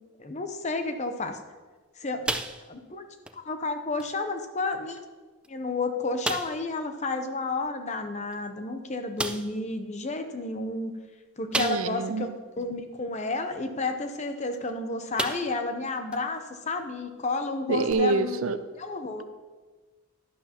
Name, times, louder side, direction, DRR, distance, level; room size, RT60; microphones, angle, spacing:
voice 1, 0.2-1.4 2.0-2.3 2.7-3.0 3.3-5.0 5.5-10.9 11.4-12.3 12.6-19.2, left 3 dB, 30° left, 7 dB, 0.7 m, -31 dB
sound 1, 2.2-2.9 3.2-3.4 4.0-4.1 4.9-5.0 5.4-5.5 6.2-6.7 8.3-8.4 9.2-9.6 11.5-12.1 12.6-12.7 14.5-14.7 15.2-15.7 16.1-16.2 17.9-18.0, right 2 dB, 5° right, 0.3 m, -32 dB
voice 2, 11.6-12.3 17.7-18.6, right 3 dB, 70° right, 12 dB, 0.5 m, -26 dB
11.5 x 11.0 x 2.9 m, 1.3 s
head